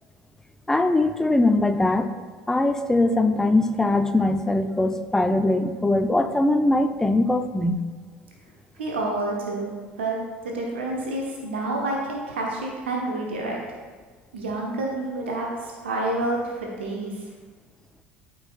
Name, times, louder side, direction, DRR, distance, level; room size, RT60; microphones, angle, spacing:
voice 1, 0.7-2.1 2.5-7.8, left 2 dB, 10° left, 8 dB, 0.5 m, -21 dB
voice 2, 8.8-9.7 10.0-10.2 10.4-13.6 14.3-17.2, right 2 dB, 70° right, -1 dB, 1.0 m, -28 dB
12.5 x 4.7 x 2.3 m, 1.5 s
figure-of-eight pair, 65°, 6 cm